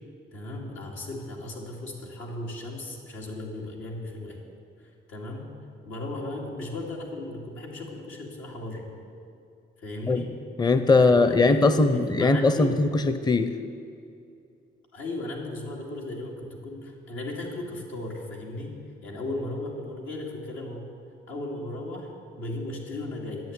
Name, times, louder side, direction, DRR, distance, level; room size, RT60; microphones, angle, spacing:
voice 1, 0.3-4.4 5.1-5.5 5.9-8.9 9.8-10.3 10.9-12.7 14.9-18.7 19.0-20.9 21.3-23.5, left 2 dB, 85° left, -1 dB, 2.6 m, -36 dB
voice 2, 10.6-13.5, left 3 dB, 20° left, 10 dB, 0.6 m, -20 dB
10.5 x 8.0 x 9.7 m, 2.5 s
cardioid pair, 90°, 20 cm